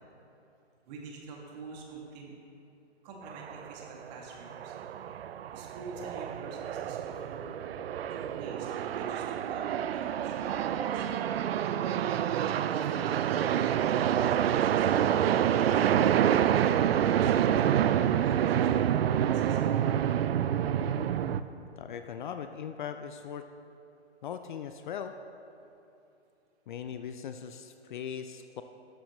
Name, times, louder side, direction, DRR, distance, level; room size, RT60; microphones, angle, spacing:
voice 1, 0.9-2.3 3.0-4.8 5.5-7.6 8.0-11.5 12.7-17.6 18.2-19.8, right 3 dB, 35° right, -1 dB, 2.2 m, -47 dB
sound 1, 3.3-4.2 4.5-21.4, right 10 dB, 60° right, 0.5 m, -27 dB
voice 2, 21.8-23.5 24.2-25.1 26.7-28.6, left 8 dB, 45° left, 8 dB, 0.5 m, -39 dB
13.5 x 11.0 x 3.1 m, 2.8 s
hypercardioid pair, 140°, 34 cm